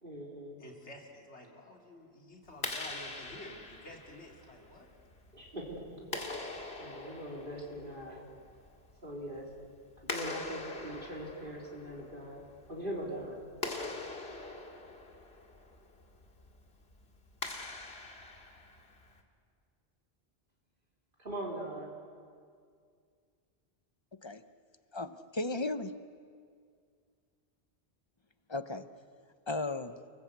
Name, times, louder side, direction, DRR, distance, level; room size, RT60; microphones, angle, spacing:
voice 1, 0.0-0.6 5.3-6.1 6.8-8.2 9.0-9.5 10.0-12.4 12.7-13.4 21.2-21.9, right 1 dB, 50° right, -3 dB, 3.7 m, -41 dB
voice 2, 0.6-4.9, left 1 dB, 85° left, 0 dB, 3.6 m, -50 dB
Clapping, 2.5-19.2, left 2 dB, 65° left, 2.3 m, -44 dB
voice 3, 24.9-25.9 28.5-28.9 29.5-30.0, left 2 dB, 30° left, 11 dB, 0.8 m, -35 dB
29.5 x 20.0 x 8.1 m, 2.2 s
omnidirectional pair, 1.1 m